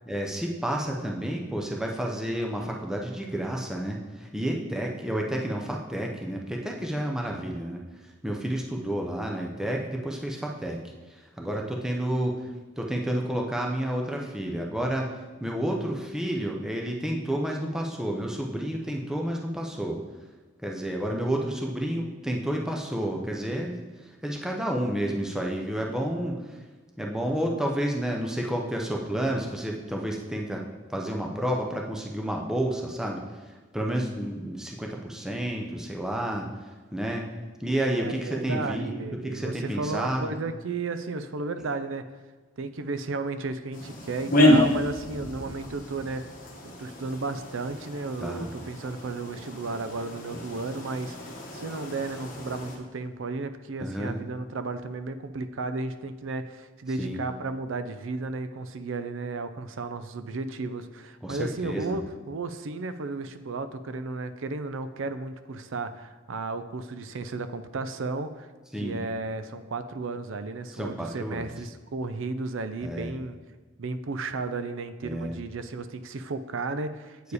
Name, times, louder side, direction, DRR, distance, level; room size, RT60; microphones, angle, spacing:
voice 1, 0.1-10.8 11.1-12.5 12.8-20.0 20.6-26.6 27.0-37.3 37.6-40.3 48.2-48.5 50.3-50.4 53.8-54.2 57.0-57.2 61.2-62.1 68.7-69.0 70.7-71.5 72.8-73.2 75.0-75.4, right 1 dB, 5° right, 0 dB, 0.6 m, -30 dB
voice 2, 37.9-42.1 42.6-46.2 46.6-51.2 51.5-68.5 68.8-73.4 73.8-77.3, right 3 dB, 70° right, 11 dB, 0.5 m, -34 dB
sound 1, 43.7-52.8, left 1 dB, 40° left, 1.2 m, -29 dB
8.1 x 4.8 x 4.8 m, 1.3 s
head